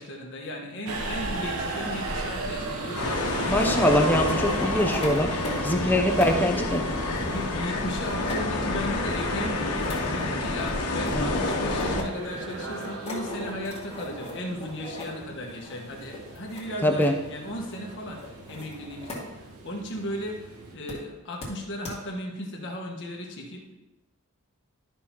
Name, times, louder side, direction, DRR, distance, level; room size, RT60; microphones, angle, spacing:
voice 1, 0.0-3.3 5.7-6.0 7.2-23.7, left 1 dB, 55° left, 0 dB, 1.4 m, -36 dB
Subway metro underground, 0.9-20.8, right 2 dB, 75° right, 1.1 m, -38 dB
sound 1, 2.3-5.7 6.0-19.3 19.6-19.7 20.9-21.0 21.4-21.5 21.8-21.9, left 1 dB, 25° left, 2.1 m, -40 dB
sound 2, 3.0-12.0, left 2 dB, 90° left, 1.2 m, -28 dB
voice 2, 3.5-5.4 5.6-6.9 11.2-11.3 16.8-17.1, equal, 10° left, 3 dB, 0.7 m, -23 dB
12.0 x 5.7 x 3.0 m, 1.0 s
head